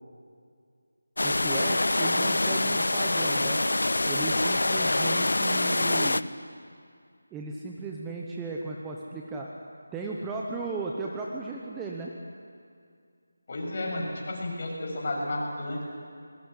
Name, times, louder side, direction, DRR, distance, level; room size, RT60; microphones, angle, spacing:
sound 1, 1.2-6.2, left 2 dB, 85° left, 0.8 m, -25 dB
voice 1, 1.2-3.6 4.1-6.2 7.3-9.5 9.9-12.1, right 3 dB, 5° right, -2 dB, 1.0 m, -35 dB
voice 2, 13.5-15.8, left 1 dB, 35° left, -2 dB, 7.1 m, -32 dB
21.5 x 21.0 x 9.9 m, 2.3 s
figure-of-eight pair, 175°, 0 cm